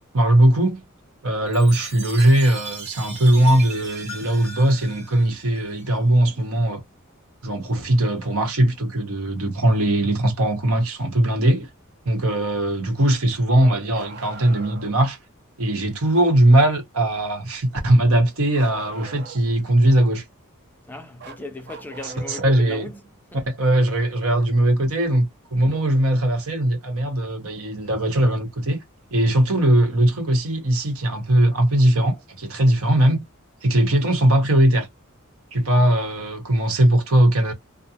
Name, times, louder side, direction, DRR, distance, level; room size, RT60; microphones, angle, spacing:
voice 1, 0.1-0.8 1.2-6.8 7.4-11.7 12.0-15.2 15.6-20.2 22.0-22.9 23.5-28.8 29.1-33.2 33.6-34.9 35.5-37.5, right 1 dB, 80° right, 1.0 m, -19 dB
Chime, 1.5-6.0, right 3 dB, 30° right, 1.1 m, -38 dB
Bark, 13.9-15.0 18.6-19.6 21.2-22.7 24.4-24.5 26.4-26.5 27.6-27.7, right 4 dB, 50° right, 0.6 m, -41 dB
voice 2, 20.8-23.4, left 2 dB, 10° left, 0.4 m, -37 dB
2.4 x 2.1 x 2.7 m
head